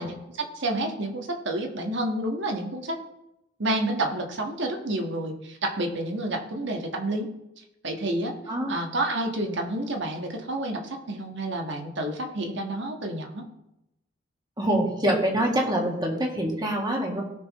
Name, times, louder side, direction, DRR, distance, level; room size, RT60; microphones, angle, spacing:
voice 1, 0.0-3.0 3.6-7.3 7.8-8.3 8.7-13.4, right 1 dB, 65° right, 2 dB, 1.6 m, -29 dB
voice 2, 14.6-17.2, right 1 dB, 20° right, 0 dB, 1.9 m, -25 dB
18.0 x 6.4 x 3.1 m, 0.88 s
head